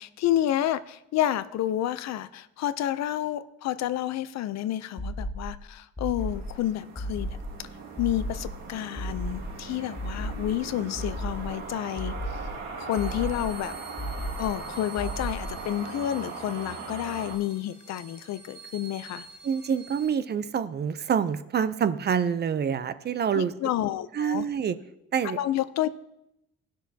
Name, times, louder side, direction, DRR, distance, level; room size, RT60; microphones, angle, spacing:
voice 1, 0.0-7.3 7.6-7.7 8.0-12.1 12.8-13.8 14.4-19.3 23.3-24.5 25.2-25.9, left 12 dB, 65° left, 14 dB, 0.6 m, -30 dB
sound 1, 5.0-5.6 6.0-6.6 7.0-7.6 8.0-8.6 9.0-9.6 10.0-10.6 11.0-11.6 12.0-12.6 13.0-13.6 14.0-14.6 15.0-15.6, equal, 10° left, 0.9 m, -34 dB
sound 2, 6.2-17.3, right 4 dB, 70° right, 2.0 m, -40 dB
sound 3, 12.9-20.0, right 3 dB, 5° right, 4.3 m, -48 dB
voice 2, 19.4-23.5 24.1-24.8 25.1-25.4, right 7 dB, 35° right, 14 dB, 0.5 m, -26 dB
18.5 x 6.4 x 2.8 m, 0.86 s
cardioid pair, 120°, 29 cm